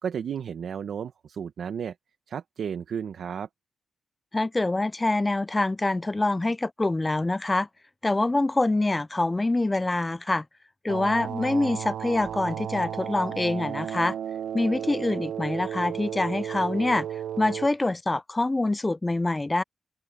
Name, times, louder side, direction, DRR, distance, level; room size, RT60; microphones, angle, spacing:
voice 1, 0.0-1.9 2.3-3.5, right 7 dB, 60° right, 1.0 m, -33 dB
voice 2, 4.3-7.7 8.0-10.5 10.8-14.2 14.5-19.6, left 2 dB, 15° left, 0.3 m, -25 dB
sound 1, 10.9-17.7, right 9 dB, 85° right, 0.7 m, -34 dB
open air
wide cardioid pair, 145°, 0 cm